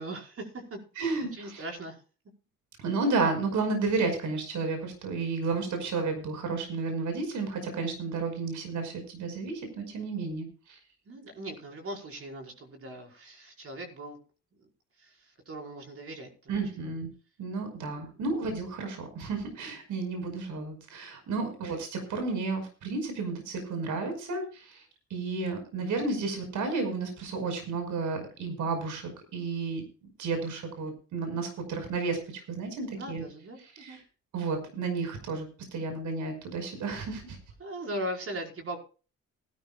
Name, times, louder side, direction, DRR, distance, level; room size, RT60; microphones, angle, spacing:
voice 1, 0.0-0.8 1.3-2.0 11.1-14.2 14.6-14.7 15.0-16.6 17.7-18.0 21.4-21.6 32.9-34.0 37.6-38.8, right 1 dB, 50° right, 1 dB, 5.1 m, -39 dB
voice 2, 1.0-1.7 2.8-10.8 16.5-17.1 17.4-24.8 25.1-29.8 30.2-33.2 33.6-34.0 34.3-37.4, right 4 dB, 75° right, 6 dB, 5.5 m, -32 dB
19.5 x 13.5 x 2.4 m, 0.35 s
cardioid pair, 90°, 30 cm